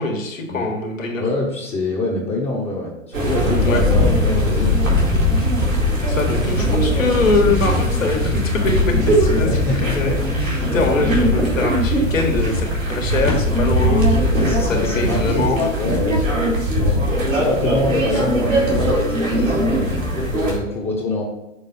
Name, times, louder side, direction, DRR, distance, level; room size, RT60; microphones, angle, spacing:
voice 1, 0.0-1.2 3.6-3.8 6.0-10.1 10.7-15.6, left 3 dB, 75° left, 2 dB, 1.6 m, -23 dB
voice 2, 1.2-4.7 8.2-8.4 9.4-10.9 14.3-16.2 16.8-17.0 17.3-19.6 20.1-21.2, left 2 dB, 15° left, -3 dB, 0.8 m, -25 dB
sound 1, 3.1-20.6, equal, 85° right, 2.3 m, -19 dB
6.2 x 3.3 x 5.3 m, 0.94 s
figure-of-eight pair, 115°, 39 cm